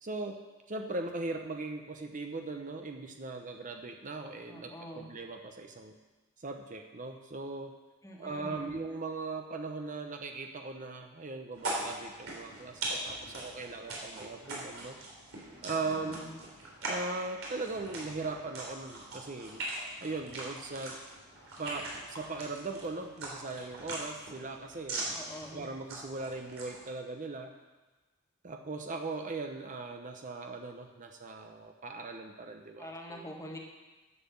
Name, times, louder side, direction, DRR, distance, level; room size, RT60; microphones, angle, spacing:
voice 1, 0.0-5.9 6.4-7.7 8.2-15.0 15.6-16.3 16.8-19.6 20.0-21.0 21.6-25.1 25.5-27.5 28.4-33.2, right 3 dB, 40° right, 4 dB, 0.8 m, -39 dB
voice 2, 4.5-5.1 8.0-8.8 15.8-16.4 25.1-25.7 32.8-33.6, left 1 dB, 15° left, 0 dB, 1.7 m, -45 dB
sound 1, 11.5-26.9, right 2 dB, 90° right, 3.5 m, -41 dB
11.0 x 7.5 x 7.0 m, 1.2 s
head